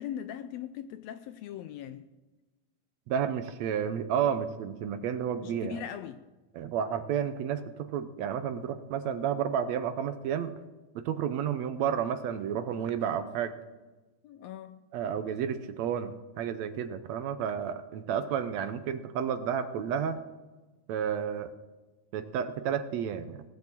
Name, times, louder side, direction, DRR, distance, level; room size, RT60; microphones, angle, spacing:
voice 1, 0.0-2.1 5.4-6.2 14.2-14.9, left 10 dB, 80° left, 1.6 m, -40 dB
voice 2, 3.1-5.8 6.6-10.6 11.0-13.5 14.9-20.2 20.9-21.5 22.1-23.4, right 8 dB, 75° right, 1.9 m, -31 dB
17.0 x 7.2 x 7.6 m
omnidirectional pair, 3.4 m